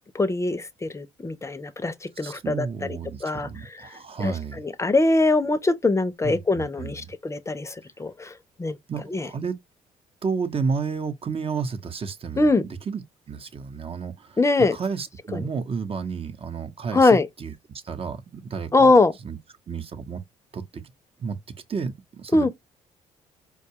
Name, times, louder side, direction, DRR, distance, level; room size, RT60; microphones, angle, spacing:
voice 1, 0.1-3.0 3.2-8.3 8.6-8.8 9.1-9.3 12.4-12.6 14.4-14.8 15.3-15.5 16.9-17.3 18.7-19.1 22.3-22.5, left 3 dB, 20° left, 0.6 m, -22 dB
voice 2, 2.2-4.6 6.2-7.1 8.9-9.6 10.2-12.5 12.9-13.0 13.3-14.4 14.7-18.9 19.2-19.4 19.7-20.2 20.5-20.6 21.2-21.4 21.7-22.5, right 5 dB, 40° right, 0.8 m, -31 dB
4.5 x 2.3 x 2.7 m
supercardioid pair, 65°, 15 cm